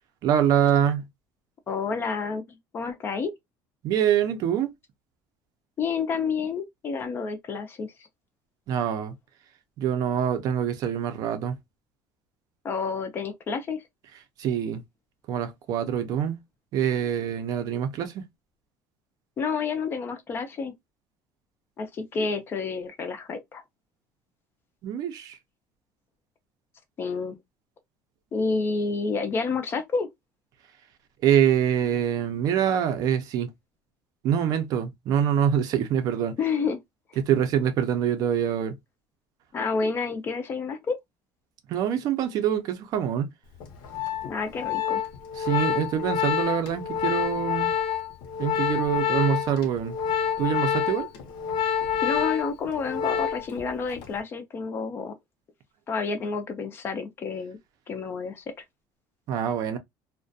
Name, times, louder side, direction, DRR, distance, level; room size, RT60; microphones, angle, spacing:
voice 1, 0.2-1.1 3.8-4.7 8.7-9.1 9.8-11.6 14.4-14.8 15.3-16.4 16.7-18.2 24.8-25.4 31.2-33.5 34.2-36.4 37.2-38.8 41.7-43.3 45.3-47.7 48.4-50.0 50.4-51.1 59.3-59.8, right 9 dB, 45° right, 0.5 m, -25 dB
voice 2, 1.7-3.3 5.8-7.9 12.6-13.8 19.4-20.7 21.8-23.6 27.0-27.4 28.3-30.1 36.4-36.8 39.5-41.0 44.2-45.0 52.0-55.1 55.9-57.6 57.9-58.4, left 5 dB, 25° left, 0.3 m, -29 dB
Organ, 43.6-53.6 53.9-54.2, left 8 dB, 65° left, 0.7 m, -27 dB
2.3 x 2.1 x 2.5 m
cardioid pair, 175°, 9 cm